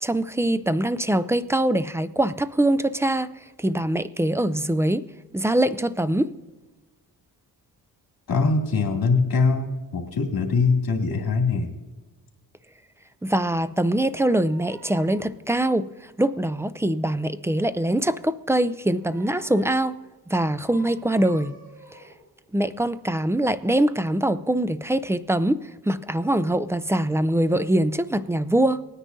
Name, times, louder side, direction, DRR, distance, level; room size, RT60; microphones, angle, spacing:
voice 1, 0.0-3.3 3.6-5.1 5.3-6.3 13.2-15.9 16.2-20.0 20.3-21.5 22.5-28.8, right 1 dB, 5° right, 0.4 m, -23 dB
voice 2, 8.3-11.7, left 4 dB, 70° left, 2.4 m, -22 dB
sound 1, 13.8-15.4 18.6-20.1 20.5-22.4 22.9-23.0, right 2 dB, 85° right, 4.1 m, -50 dB
19.0 x 9.9 x 2.7 m
cardioid pair, 95°, 38 cm